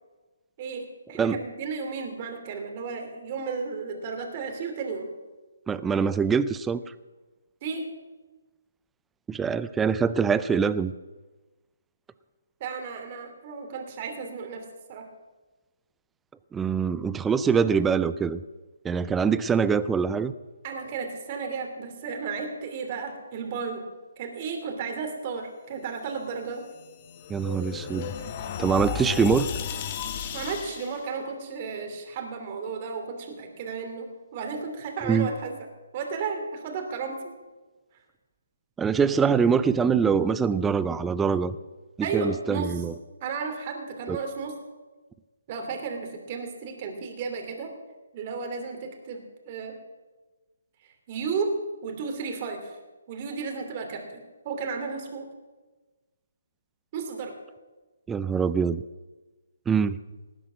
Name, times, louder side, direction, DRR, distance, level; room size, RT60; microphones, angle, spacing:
voice 1, 0.6-5.1 7.6-7.9 12.6-15.1 20.6-23.8 24.2-26.6 30.3-35.5 35.9-37.3 42.0-42.7 43.2-44.5 45.5-47.7 48.1-49.8 51.1-51.5 51.8-52.8 53.1-55.3 56.9-57.3, right 5 dB, 35° right, 4 dB, 3.0 m, -33 dB
voice 2, 5.7-6.8 9.3-10.9 16.5-18.4 18.8-20.3 27.3-28.1 28.6-29.5 35.0-35.3 38.8-41.6 42.0-42.9 44.1-44.2 58.1-58.8 59.7-60.0, right 6 dB, 10° right, 15 dB, 0.5 m, -24 dB
sound 1, 26.5-31.0, left 7 dB, 35° left, 1.3 m, -34 dB
19.0 x 10.0 x 6.3 m, 1.2 s
figure-of-eight pair, 145°, 0 cm